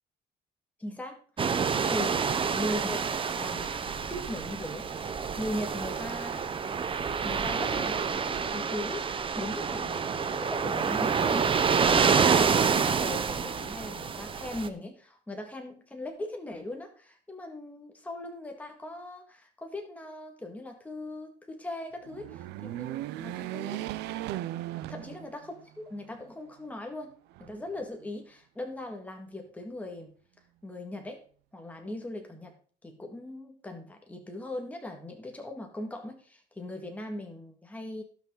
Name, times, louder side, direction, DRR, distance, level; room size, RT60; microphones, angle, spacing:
voice 1, 0.8-2.2 2.5-3.0 3.4-6.5 7.2-9.1 9.4-23.8 24.9-30.1 30.6-31.2 31.5-32.6 32.8-38.0, left 1 dB, 10° left, 3 dB, 1.9 m, -39 dB
sound 1, 1.4-14.7, right 6 dB, 30° right, 0.9 m, -28 dB
sound 2, 22.0-25.6 26.1-26.2 27.3-28.1, right 14 dB, 90° right, 0.6 m, -37 dB
17.0 x 5.8 x 3.9 m, 0.42 s
cardioid pair, 110°, 17 cm